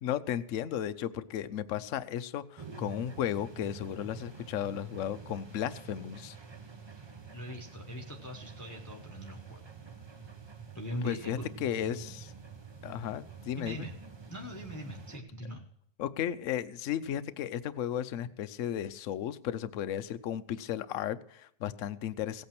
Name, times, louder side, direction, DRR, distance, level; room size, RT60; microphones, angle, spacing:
voice 1, 0.0-6.4 11.0-12.3 12.8-13.9 16.0-22.4, left 10 dB, 60° left, 12 dB, 0.9 m, -34 dB
sound 1, 2.6-15.2, right 6 dB, 25° right, 0.6 m, -47 dB
voice 2, 7.3-9.7 10.7-11.4 13.6-13.9 14.3-15.6, equal, 15° left, 2 dB, 1.0 m, -41 dB
16.5 x 8.6 x 6.0 m, 0.73 s
omnidirectional pair, 1.8 m